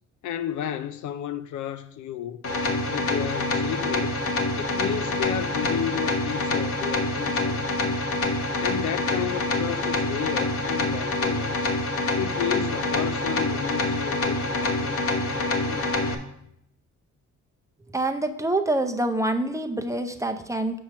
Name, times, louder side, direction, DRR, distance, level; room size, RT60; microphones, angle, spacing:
voice 1, 0.2-2.4 2.9-4.1 4.6-7.7 8.6-11.6 12.2-15.9, left 10 dB, 75° left, 0.5 m, -32 dB
sound 1, 2.4-16.1, left 2 dB, 50° left, 1.0 m, -26 dB
voice 2, 17.9-20.8, right 1 dB, 10° right, 0.5 m, -26 dB
6.2 x 4.5 x 5.6 m
cardioid pair, 90°, 30 cm